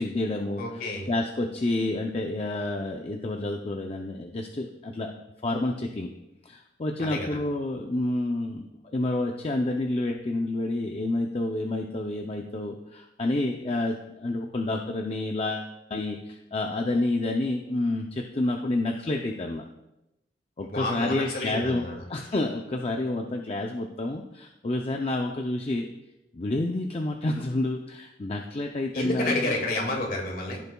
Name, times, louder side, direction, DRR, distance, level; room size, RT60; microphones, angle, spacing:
voice 1, 0.0-5.1 5.4-6.1 6.4-19.6 20.6-25.9 26.3-29.5, left 2 dB, 35° left, 2 dB, 0.5 m, -29 dB
voice 2, 0.6-1.1 7.0-7.4 20.6-22.1 28.9-30.6, left 2 dB, 55° left, 1 dB, 2.0 m, -30 dB
15.0 x 6.7 x 2.3 m, 0.92 s
head